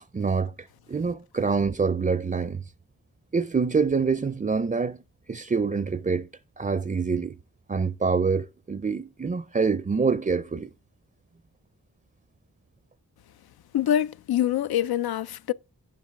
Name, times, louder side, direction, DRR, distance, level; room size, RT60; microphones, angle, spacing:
voice 1, 0.1-2.6 3.3-5.0 5.3-6.3 6.6-7.3 7.7-10.7, right 5 dB, 25° right, 0.5 m, -26 dB
voice 2, 13.7-15.5, left 11 dB, 80° left, 0.5 m, -25 dB
9.5 x 7.5 x 3.6 m
cardioid pair, 50°, 37 cm